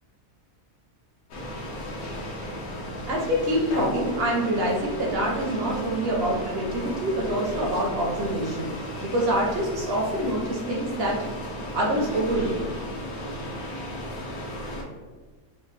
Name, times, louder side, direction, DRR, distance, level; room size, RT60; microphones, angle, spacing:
sound 1, 1.3-14.8, equal, 75° left, 1.1 m, -35 dB
voice 1, 3.1-11.2 11.7-12.6, right 1 dB, 65° right, -2 dB, 0.6 m, -26 dB
3.7 x 2.1 x 3.1 m, 1.4 s
omnidirectional pair, 1.6 m